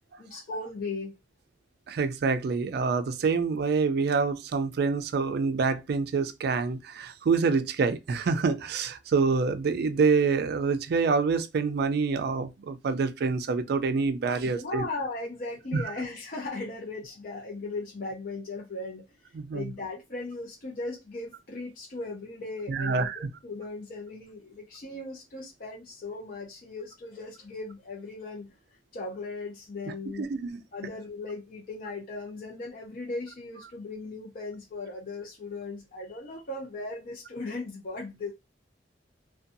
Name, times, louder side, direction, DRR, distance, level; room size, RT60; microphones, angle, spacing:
voice 1, 0.2-1.1 14.4-28.5 28.9-30.3 30.7-38.3, left 3 dB, 50° left, 0.6 m, -37 dB
voice 2, 1.9-14.9 15.7-15.8 19.3-19.7 22.7-23.2 30.2-30.6, right 4 dB, 60° right, 0.3 m, -26 dB
2.5 x 2.2 x 2.6 m
head